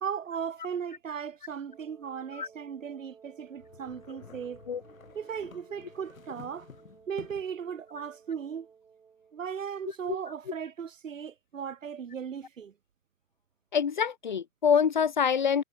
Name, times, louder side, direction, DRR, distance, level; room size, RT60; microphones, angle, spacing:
voice 1, 0.0-4.7 5.1-6.7 7.1-8.7 9.3-12.7, right 7 dB, 65° right, 2.5 m, -37 dB
Wind instrument woodwind instrument, 1.7-9.5, right 6 dB, 5° right, 7.4 m, -56 dB
sound 1, 3.6-7.6, left 6 dB, 80° left, 2.7 m, -51 dB
voice 2, 13.7-15.6, left 7 dB, 35° left, 0.5 m, -26 dB
hypercardioid pair, 170°, 41 cm